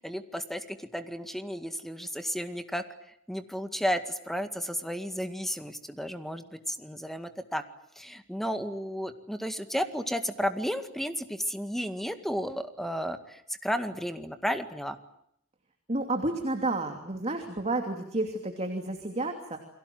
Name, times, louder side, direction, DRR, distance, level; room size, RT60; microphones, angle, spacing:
voice 1, 0.0-2.8 3.3-7.6 8.0-15.0, equal, ahead, 8 dB, 1.9 m, -33 dB
voice 2, 15.9-19.6, right 2 dB, 30° right, 5 dB, 2.9 m, -31 dB
30.0 x 23.0 x 7.8 m, 0.72 s
head